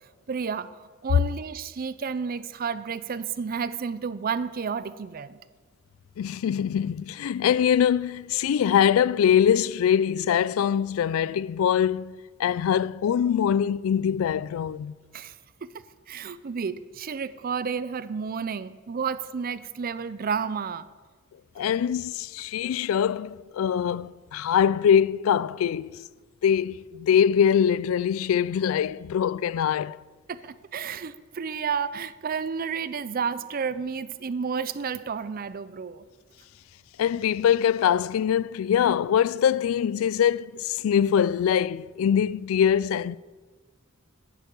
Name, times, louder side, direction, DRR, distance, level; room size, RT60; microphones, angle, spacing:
voice 1, 0.3-5.4 15.1-15.4 15.6-20.9 30.3-36.0, right 6 dB, 45° right, 0.5 m, -31 dB
voice 2, 6.2-14.9 21.6-26.0 26.4-30.0 37.0-43.2, left 8 dB, 80° left, 0.3 m, -23 dB
11.0 x 10.5 x 5.4 m
head